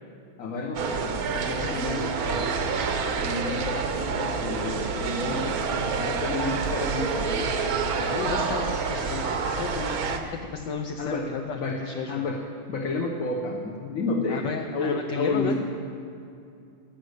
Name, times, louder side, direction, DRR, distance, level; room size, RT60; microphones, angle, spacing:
voice 1, 0.4-2.4 3.2-5.5 6.0-7.5 11.0-11.7 12.1-12.4 12.7-15.5, left 2 dB, 45° left, 0 dB, 1.4 m, -30 dB
sound 1, 0.7-10.2, right 5 dB, 55° right, 1.2 m, -28 dB
voice 2, 8.0-12.2 14.3-15.5, left 6 dB, 65° left, 3 dB, 1.3 m, -33 dB
13.0 x 9.3 x 8.2 m, 2.5 s
omnidirectional pair, 2.3 m